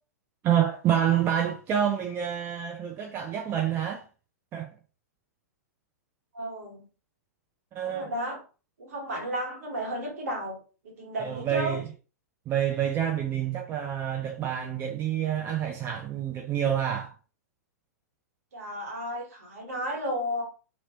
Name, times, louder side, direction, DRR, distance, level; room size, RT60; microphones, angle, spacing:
voice 1, 0.4-4.0 4.5-4.7 7.7-8.1 11.2-11.8 12.5-17.1, right 9 dB, 25° right, 0.6 m, -27 dB
voice 2, 6.3-6.9 7.8-8.4 8.8-10.6 10.8-11.8 18.5-20.4, equal, 60° right, 1.5 m, -33 dB
2.9 x 2.9 x 2.8 m
figure-of-eight pair, 105°, 9 cm